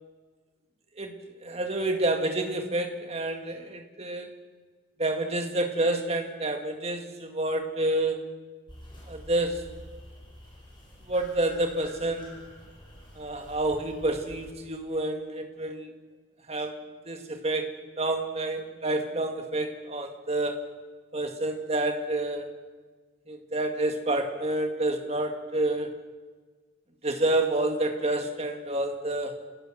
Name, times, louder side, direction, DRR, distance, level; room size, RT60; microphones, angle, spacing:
voice 1, 1.0-4.3 5.0-8.3 9.1-9.7 11.1-12.5 13.2-15.9 16.5-16.8 17.1-20.7 21.1-22.5 23.3-25.9 27.0-29.4, right 2 dB, 30° right, 4 dB, 2.0 m, -29 dB
sound 1, 8.7-14.5, left 1 dB, 25° left, 5.9 m, -48 dB
28.5 x 17.5 x 6.4 m, 1.4 s
head